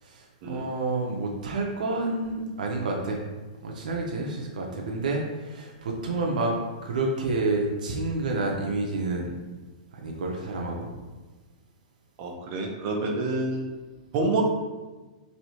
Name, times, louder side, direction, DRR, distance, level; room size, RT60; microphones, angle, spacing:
voice 1, 0.0-3.2 3.6-9.3 9.9-10.9, right 2 dB, 90° right, 0 dB, 0.5 m, -29 dB
voice 2, 12.2-13.7 14.1-14.4, right 3 dB, 35° right, 1 dB, 0.5 m, -28 dB
3.1 x 2.7 x 2.8 m, 1.2 s
hypercardioid pair, 150°, 4 cm